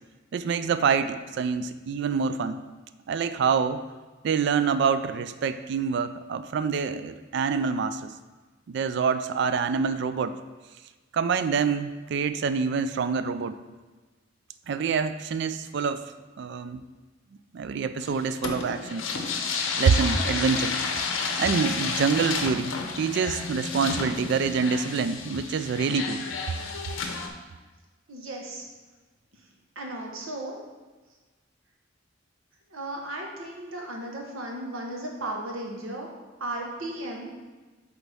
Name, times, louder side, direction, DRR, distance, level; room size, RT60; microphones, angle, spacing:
voice 1, 0.3-2.6 3.1-3.8 4.2-8.1 8.7-10.4 11.1-13.6 14.7-16.0 16.4-16.8 17.5-19.0 19.8-20.8 21.4-26.3, right 5 dB, 60° right, 11 dB, 0.3 m, -26 dB
sound 1, 18.0-27.3, left 4 dB, 75° left, 0.7 m, -31 dB
voice 2, 28.1-28.6 29.7-30.6 32.7-36.1 36.4-37.3, right 1 dB, 90° right, 0 dB, 1.1 m, -35 dB
8.0 x 3.5 x 3.5 m, 1.3 s
head